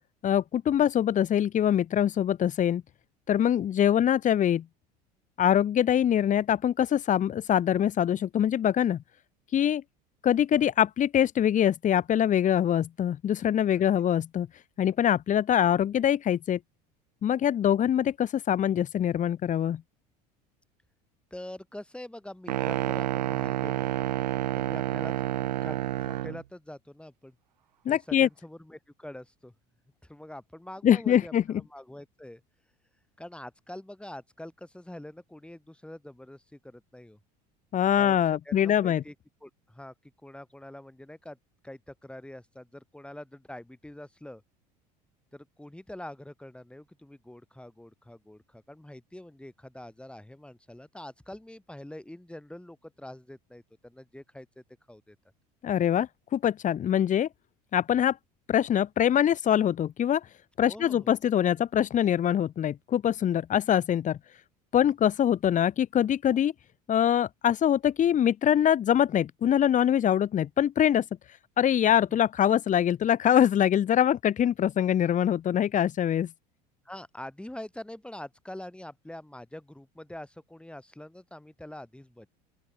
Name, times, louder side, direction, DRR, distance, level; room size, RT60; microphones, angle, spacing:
voice 1, 0.2-2.8 3.3-4.6 5.4-9.0 9.5-9.8 10.2-14.5 14.8-16.6 17.2-19.8 27.8-28.3 30.8-31.6 37.7-39.0 55.6-57.3 57.7-58.2 58.5-60.2 60.6-64.2 64.7-66.5 66.9-71.0 71.6-76.3, left 10 dB, 35° left, 1.4 m, -24 dB
voice 2, 21.3-24.1 24.5-25.1 25.6-27.3 27.9-29.5 30.0-32.4 33.2-37.2 38.0-39.1 39.4-39.9 40.2-41.4 41.6-44.4 45.3-54.5 54.9-55.1 60.6-61.1 64.8-64.9 72.1-72.2 76.8-82.3, left 1 dB, 5° left, 6.5 m, -44 dB
sound 1, 22.5-26.4, right 13 dB, 85° right, 1.5 m, -29 dB
open air
hypercardioid pair, 80°, 21 cm